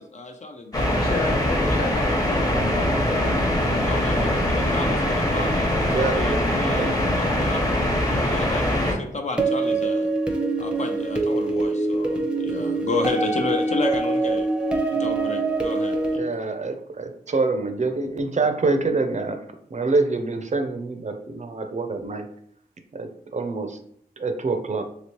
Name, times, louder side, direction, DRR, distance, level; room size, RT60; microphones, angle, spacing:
voice 1, 0.0-1.0 3.8-7.6 8.2-10.1 10.6-14.5 14.9-16.4, left 3 dB, 45° left, 4 dB, 0.5 m, -31 dB
sound 1, 0.7-8.9, left 1 dB, 20° left, 0.9 m, -22 dB
voice 2, 0.9-4.9, left 2 dB, 65° left, -1 dB, 0.9 m, -32 dB
sound 2, 9.4-16.2, right 3 dB, 5° right, 0.6 m, -24 dB
voice 3, 16.2-19.4 19.7-22.3 22.9-23.8 24.2-24.8, right 3 dB, 45° right, 6 dB, 0.5 m, -25 dB
2.9 x 2.9 x 3.0 m, 0.67 s
cardioid pair, 60°, 17 cm